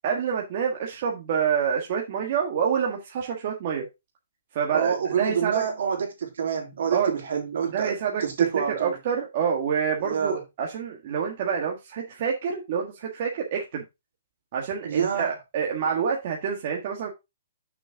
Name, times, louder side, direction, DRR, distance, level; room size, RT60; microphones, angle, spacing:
voice 1, 0.0-3.9 4.5-5.6 6.9-7.1 7.7-13.8 14.5-17.1, right 7 dB, 35° right, 1.6 m, -27 dB
voice 2, 4.7-9.0 10.1-10.4 14.8-15.3, right 7 dB, 65° right, 3.2 m, -27 dB
6.8 x 6.2 x 3.6 m
hypercardioid pair, 170°, 0 cm